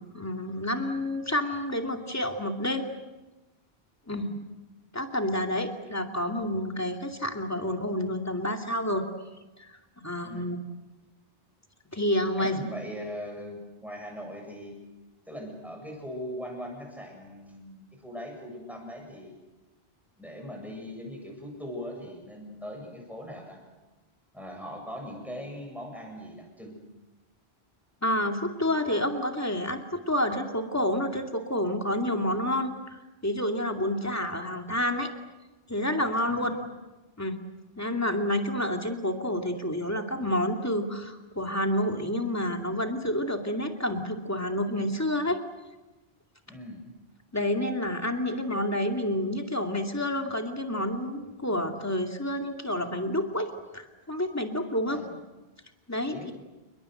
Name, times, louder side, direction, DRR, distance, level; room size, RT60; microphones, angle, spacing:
voice 1, 0.0-2.9 4.1-4.3 4.9-9.1 9.6-9.8 10.0-10.6 11.9-12.6 28.0-35.1 35.7-36.6 37.2-37.4 37.8-45.4 47.3-55.0 55.9-56.1, left 1 dB, 15° left, 3 dB, 2.5 m, -29 dB
voice 2, 12.4-14.8 15.3-19.4 20.2-23.6 24.3-26.8 36.3-36.5 46.5-46.8 48.3-48.4 54.9-55.1 56.1-56.4, equal, ahead, 1 dB, 7.7 m, -40 dB
29.5 x 21.0 x 8.0 m, 1.1 s
omnidirectional pair, 1.0 m